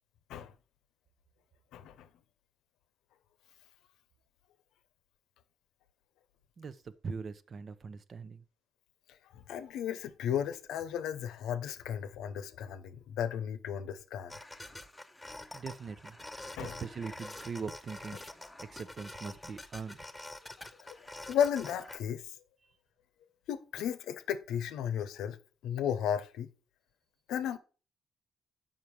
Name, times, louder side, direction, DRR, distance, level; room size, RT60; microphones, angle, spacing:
voice 1, 1.7-2.1 9.3-14.4 16.6-16.8 20.8-22.3 23.5-25.4 25.6-26.5 27.3-27.6, left 9 dB, 85° left, 0.8 m, -34 dB
voice 2, 6.6-8.4 15.5-16.2 16.6-20.0, right 5 dB, 45° right, 0.7 m, -42 dB
sound 1, 14.3-22.0, left 1 dB, 10° left, 0.8 m, -47 dB
7.3 x 5.6 x 4.8 m
cardioid pair, 90°, 0 cm